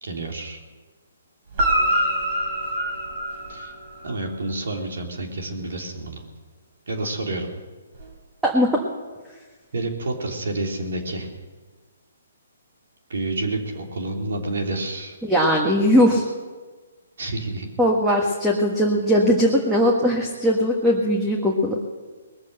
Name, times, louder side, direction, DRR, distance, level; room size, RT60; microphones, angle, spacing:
voice 1, 0.0-0.6 3.5-3.7 4.0-6.2 6.9-7.5 9.7-11.3 13.1-15.2 17.2-17.7, right 2 dB, 70° right, 2 dB, 3.2 m, -29 dB
Guitar, 1.5-4.1 7.9-8.0, right 1 dB, 45° right, 4.2 m, -24 dB
voice 2, 15.2-16.2 17.8-21.8, equal, 5° right, -1 dB, 1.4 m, -19 dB
20.5 x 7.3 x 7.8 m, 1.4 s
hypercardioid pair, 145°, 0 cm